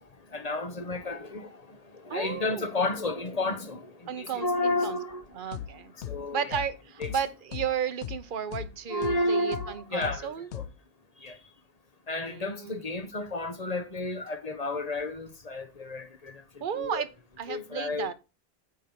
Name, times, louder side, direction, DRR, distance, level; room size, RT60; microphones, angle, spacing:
voice 1, 0.3-5.2 6.1-6.4 7.0-7.1 8.9-10.3 10.5-10.7 11.2-11.4 12.1-16.4 16.7-17.0 17.5-18.1, left 2 dB, 40° left, 0.9 m, -31 dB
voice 2, 2.1-2.7 4.1-5.0 5.3-5.9 6.3-10.5 12.2-12.8 16.6-17.1 17.4-18.1, right 8 dB, 55° right, 0.9 m, -33 dB
sound 1, 5.5-5.7 6.0-6.2 6.5-6.7 7.0-7.2 7.5-7.7 8.0-8.2 8.5-8.7 9.0-9.2 9.5-9.7 10.0-10.2 10.5-10.7, left 10 dB, 85° left, 0.9 m, -36 dB
9.3 x 3.5 x 5.8 m
omnidirectional pair, 1.1 m